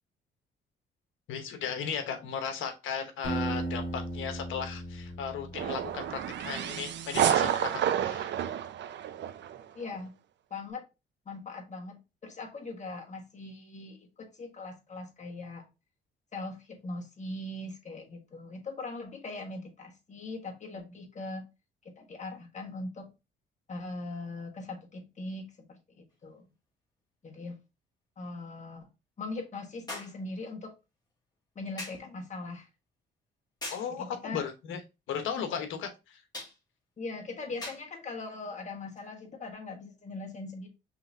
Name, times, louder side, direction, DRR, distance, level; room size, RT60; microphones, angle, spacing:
voice 1, 1.3-8.3 33.7-34.8 35.1-36.2, left 7 dB, 85° left, 1.1 m, -36 dB
Acoustic guitar, 3.2-6.3, right 1 dB, 65° left, 2.4 m, -36 dB
sound 1, 5.5-9.6, right 10 dB, 65° right, 0.6 m, -30 dB
voice 2, 9.7-10.1 10.5-10.9 11.2-15.7 16.3-21.5 21.8-23.1 23.7-26.4 27.2-27.6 28.2-28.9 29.2-30.7 31.5-32.7 33.9-34.4 37.0-40.7, left 2 dB, 35° left, 1.5 m, -40 dB
sound 2, 26.1-26.2 29.9-30.2 31.8-32.1 33.6-33.9 36.3-36.6 37.6-37.9 39.0-39.1, left 2 dB, 20° left, 2.6 m, -40 dB
5.6 x 3.4 x 2.6 m
cardioid pair, 90°, 20 cm